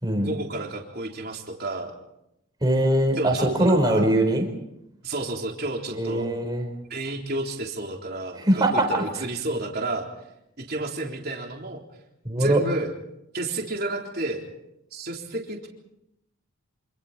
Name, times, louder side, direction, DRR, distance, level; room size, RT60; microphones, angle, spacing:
voice 1, 0.2-1.9 3.2-4.1 5.0-6.3 6.9-10.1 10.6-11.8 12.4-12.9 13.3-14.4 14.9-15.7, right 2 dB, 45° right, 0 dB, 3.7 m, -31 dB
voice 2, 2.6-4.5 5.9-6.7 8.4-8.9 12.2-12.6, right 1 dB, 20° right, 4 dB, 4.3 m, -21 dB
27.0 x 27.0 x 4.4 m, 0.83 s
head